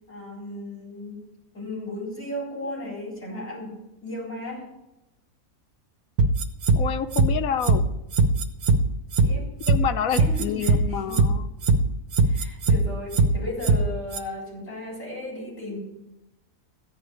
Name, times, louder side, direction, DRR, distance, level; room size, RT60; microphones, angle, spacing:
voice 1, 0.1-1.2 1.5-4.6 9.2-9.5 10.2-11.3 12.2-15.8, left 1 dB, 50° left, -5 dB, 4.9 m, -35 dB
sound 1, 6.2-6.8 7.1-7.3 7.6-7.8 8.1-8.8 9.1-9.3 9.6-9.8 10.1-10.8 11.1-11.3 11.6-11.8 12.1-12.8 13.1-13.3 13.6-13.8 14.1-14.2, right 4 dB, 75° right, 1.4 m, -19 dB
voice 2, 6.8-7.9 9.7-11.4, left 8 dB, 70° left, 10 dB, 1.2 m, -28 dB
15.0 x 5.1 x 9.6 m, 0.93 s
omnidirectional pair, 1.5 m